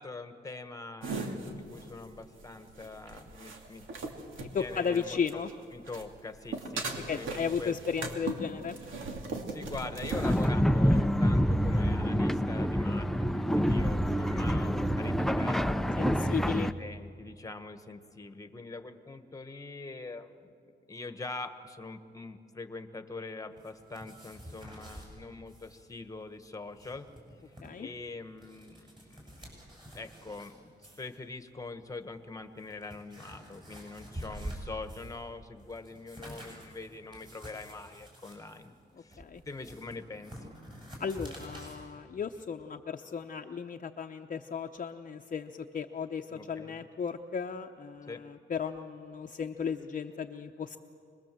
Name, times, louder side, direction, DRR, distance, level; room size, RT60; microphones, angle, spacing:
voice 1, 0.0-3.9 4.4-5.2 5.7-7.7 9.4-20.5 20.9-27.1 27.8-29.0 29.9-30.7 31.0-40.6 46.3-46.7 48.1-48.2, left 3 dB, 15° left, 8 dB, 1.4 m, -43 dB
sound 1, 1.0-5.5 5.8-10.5, right 3 dB, 90° right, 2.5 m, -39 dB
voice 2, 4.5-5.5 7.1-8.8 16.0-16.7 27.6-27.9 39.2-39.4 41.0-50.8, left 6 dB, 40° left, 4 dB, 0.8 m, -35 dB
sound 2, 10.1-16.7, equal, ahead, 0.5 m, -27 dB
sound 3, 23.6-25.1 25.5-25.8 26.1-26.2 26.6-27.7 28.2-30.5 30.8-31.2 31.9-32.0 32.5-35.2 35.6-41.8, equal, 25° right, 8.0 m, -47 dB
25.5 x 21.0 x 7.7 m, 2.5 s
cardioid pair, 115°, 20 cm